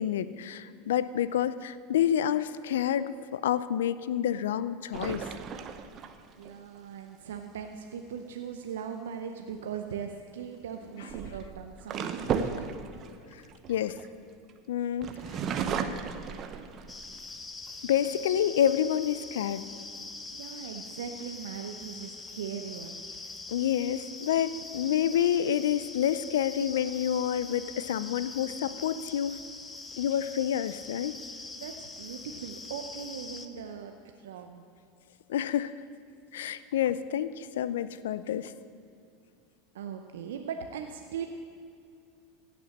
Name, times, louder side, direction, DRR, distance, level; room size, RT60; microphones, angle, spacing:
voice 1, 0.0-5.3 13.7-14.0 14.7-15.1 17.8-19.7 23.5-29.4 30.0-31.2 35.3-35.7 36.3-38.5, left 10 dB, 80° left, 15 dB, 0.4 m, -28 dB
sound 1, 4.9-6.5 9.5-9.8 10.8-14.5 15.0-17.1 17.7-17.8 18.1-18.7, right 6 dB, 45° right, 0.9 m, -35 dB
voice 2, 6.4-13.1 20.3-23.1 31.5-33.9 34.2-34.6 39.7-41.3, right 7 dB, 80° right, 5 dB, 0.7 m, -40 dB
sound 2, 16.9-33.5, left 3 dB, 20° left, 0.9 m, -43 dB
15.5 x 6.1 x 7.1 m, 2.5 s
hypercardioid pair, 90°, 0 cm